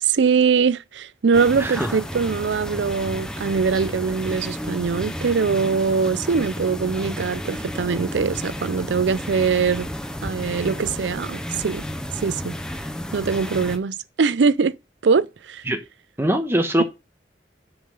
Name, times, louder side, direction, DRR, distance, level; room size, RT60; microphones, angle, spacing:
voice 1, 0.0-9.9 10.2-11.9 12.1-12.5 13.1-14.7 15.0-15.6, right 5 dB, 85° right, 0.5 m, -22 dB
sound 1, 1.3-13.8, equal, 5° left, 0.6 m, -32 dB
voice 2, 16.2-16.8, right 1 dB, 15° right, 1.2 m, -21 dB
6.6 x 5.6 x 5.4 m
head